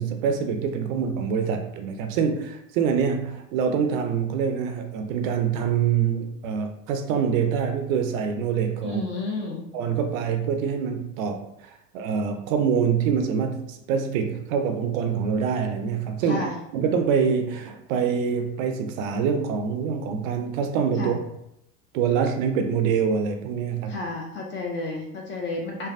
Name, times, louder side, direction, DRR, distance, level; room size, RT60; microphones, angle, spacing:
voice 1, 0.0-9.0 9.7-16.5 16.7-21.2 21.9-23.9, right 6 dB, 55° right, 6 dB, 0.5 m, -25 dB
voice 2, 8.8-9.7 16.3-16.5 21.0-21.2 23.9-25.9, left 2 dB, 25° left, 0 dB, 0.4 m, -31 dB
3.2 x 2.2 x 2.5 m, 0.79 s
hypercardioid pair, 90°, 49 cm